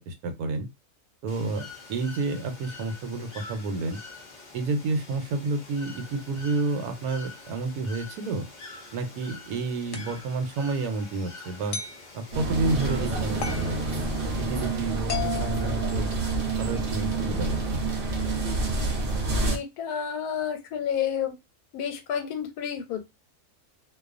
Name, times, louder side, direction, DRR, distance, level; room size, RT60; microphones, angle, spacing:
voice 1, 0.1-0.7 1.2-4.0 4.5-8.4 8.9-11.8 12.1-14.1 14.4-16.1 16.6-17.8, right 3 dB, 85° right, 7 dB, 1.1 m, -30 dB
Bird / Water, 1.3-14.4, left 3 dB, 50° left, 0.5 m, -46 dB
sound 1, 9.9-10.2 11.7-12.0 13.4-13.7 15.1-16.5, left 7 dB, 65° left, 0.9 m, -35 dB
sound 2, 12.3-19.6, right 3 dB, 50° right, 0.7 m, -28 dB
voice 2, 19.4-21.3 21.7-23.0, left 8 dB, 90° left, 7 dB, 1.1 m, -30 dB
2.4 x 2.3 x 2.4 m, 0.23 s
omnidirectional pair, 1.6 m